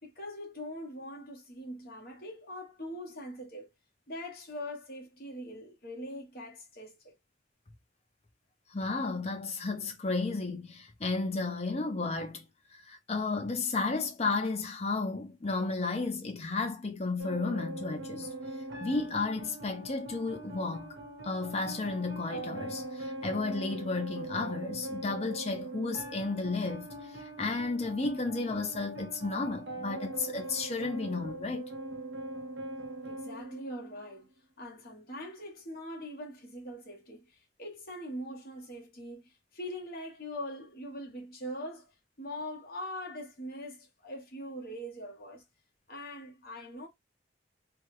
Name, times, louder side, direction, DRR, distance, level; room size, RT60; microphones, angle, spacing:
voice 1, 0.0-3.7 4.1-7.1 33.1-34.3 34.6-37.2 37.6-39.2 39.5-41.8 42.2-45.4 45.9-46.9, equal, 50° left, 1.2 m, -42 dB
voice 2, 8.7-12.4 12.7-18.3 18.8-20.9 21.2-26.9 27.2-31.7, left 3 dB, 35° left, 0.7 m, -33 dB
sound 1, 17.2-34.2, right 2 dB, 90° right, 1.0 m, -42 dB
3.3 x 2.2 x 3.2 m
head